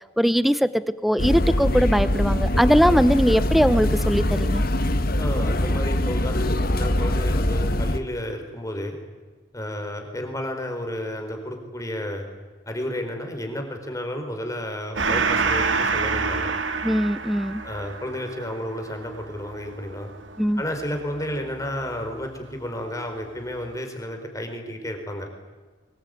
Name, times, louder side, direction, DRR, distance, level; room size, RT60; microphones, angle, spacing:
voice 1, 0.2-4.6 16.8-17.6 20.4-20.6, equal, ahead, 14 dB, 0.7 m, -20 dB
sound 1, 1.2-8.0, left 1 dB, 50° left, 1.5 m, -23 dB
voice 2, 5.2-9.0 9.5-12.3 12.7-16.5 17.6-20.1 20.6-25.3, left 1 dB, 15° left, 5 dB, 4.4 m, -32 dB
Gong, 14.9-21.9, right 4 dB, 80° right, 2.0 m, -27 dB
23.5 x 21.0 x 9.2 m, 1.4 s
head